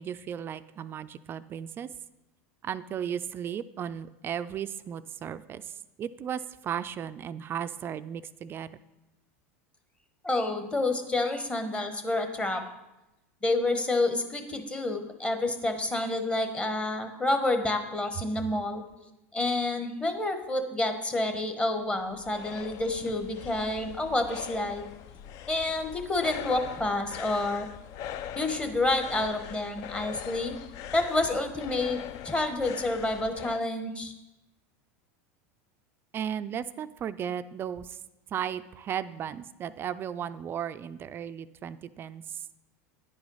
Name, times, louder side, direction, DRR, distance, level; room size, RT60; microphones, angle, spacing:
voice 1, 0.0-1.9 2.6-5.7 6.0-8.7 36.1-38.0 38.3-42.5, right 9 dB, 30° right, 13 dB, 0.3 m, -35 dB
voice 2, 10.2-12.6 13.4-18.8 19.3-24.9 25.5-27.7 28.4-30.5 30.9-34.1, left 2 dB, 15° left, 7 dB, 1.1 m, -29 dB
sound 1, 21.8-33.6, left 10 dB, 50° left, 0.5 m, -42 dB
10.0 x 4.9 x 5.5 m, 0.96 s
supercardioid pair, 115°, 7 cm